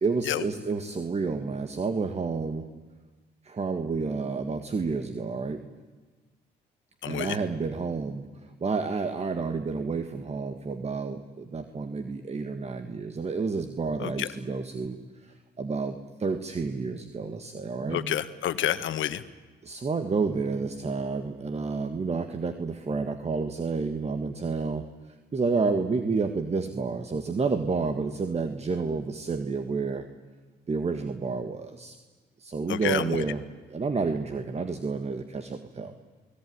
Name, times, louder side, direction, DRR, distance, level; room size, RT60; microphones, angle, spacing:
voice 1, 0.0-2.7 3.4-5.6 7.0-18.2 19.6-24.9 25.3-30.0 30.7-32.0 32.4-33.4 33.7-35.9, right 4 dB, 30° right, 8 dB, 1.7 m, -30 dB
voice 2, 7.0-7.4 14.0-14.3 17.9-19.2 32.7-33.2, left 11 dB, 75° left, 12 dB, 1.5 m, -29 dB
29.0 x 19.5 x 9.6 m, 1.4 s
cardioid pair, 90°, 20 cm